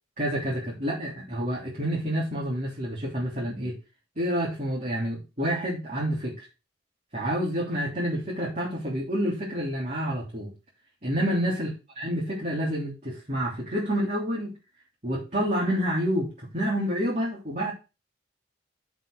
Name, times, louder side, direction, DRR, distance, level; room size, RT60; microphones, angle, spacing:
voice 1, 0.2-3.8 4.1-6.5 7.1-10.5 11.0-11.7 11.9-14.5 15.0-17.7, equal, 40° right, -6 dB, 3.5 m, -28 dB
7.6 x 6.1 x 6.5 m, 0.29 s
head